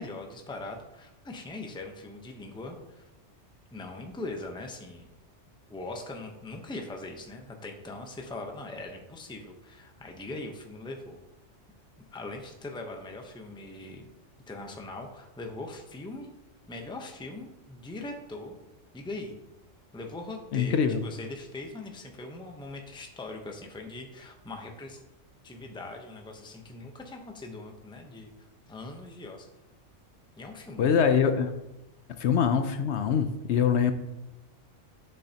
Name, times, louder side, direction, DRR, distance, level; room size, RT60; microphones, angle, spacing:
voice 1, 0.0-3.1 3.7-5.1 5.7-11.2 12.1-14.0 14.5-16.3 16.7-18.6 18.9-19.4 19.9-25.0 25.4-29.5 30.4-31.0, left 2 dB, 5° left, 3 dB, 0.6 m, -41 dB
voice 2, 20.5-21.0 30.8-31.5 32.2-33.9, left 7 dB, 70° left, 8 dB, 0.8 m, -24 dB
8.4 x 6.7 x 2.8 m, 0.99 s
omnidirectional pair, 1.2 m